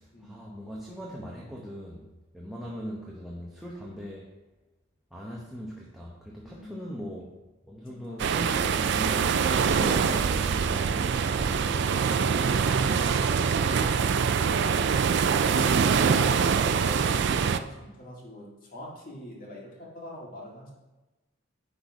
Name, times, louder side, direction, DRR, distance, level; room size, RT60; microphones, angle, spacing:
voice 1, 0.0-2.1 2.3-4.3 5.1-7.3 7.7-9.4 9.8-12.4, equal, ahead, -4 dB, 0.9 m, -40 dB
voice 2, 6.4-7.2 7.8-8.2 14.2-14.9 15.5-20.7, equal, 40° left, -3 dB, 2.0 m, -43 dB
sound 1, 8.2-17.6, right 6 dB, 55° right, 0.4 m, -24 dB
10.0 x 4.1 x 4.8 m, 1.1 s
head